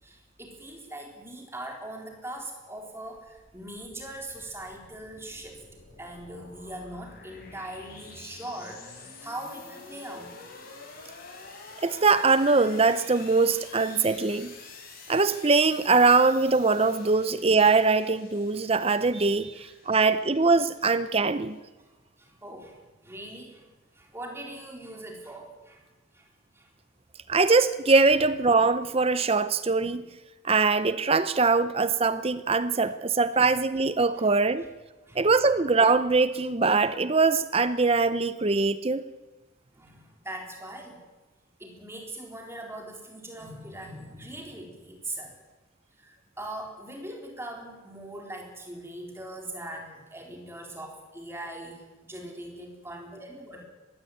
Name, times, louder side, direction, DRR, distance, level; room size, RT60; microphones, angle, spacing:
voice 1, 0.0-5.6 6.0-10.4 19.5-20.0 22.2-23.6 23.9-25.9 26.1-26.3 26.5-26.7 34.2-34.3 35.1-35.3 39.7-41.0 41.6-45.3 46.0-53.6, right 1 dB, 10° right, 1 dB, 4.0 m, -41 dB
sound 1, 2.9-21.5, left 4 dB, 45° left, 5.4 m, -48 dB
voice 2, 11.8-14.5 15.1-21.6 27.3-30.1 30.4-34.6 35.2-39.0, right 4 dB, 30° right, 13 dB, 0.7 m, -22 dB
20.5 x 16.0 x 9.3 m, 1.2 s
head